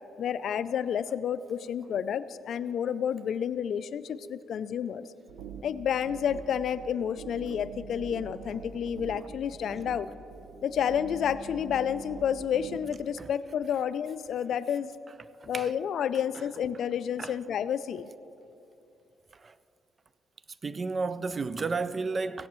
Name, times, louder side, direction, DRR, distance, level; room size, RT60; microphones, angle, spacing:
voice 1, 0.2-5.1 5.6-10.1 10.6-14.9 15.5-18.1, left 8 dB, 65° left, 0.3 m, -30 dB
sound 1, 5.3-13.0, right 5 dB, 85° right, 0.6 m, -44 dB
voice 2, 20.6-22.5, right 4 dB, 35° right, 0.3 m, -33 dB
16.0 x 10.5 x 3.1 m
cardioid pair, 90°, 0 cm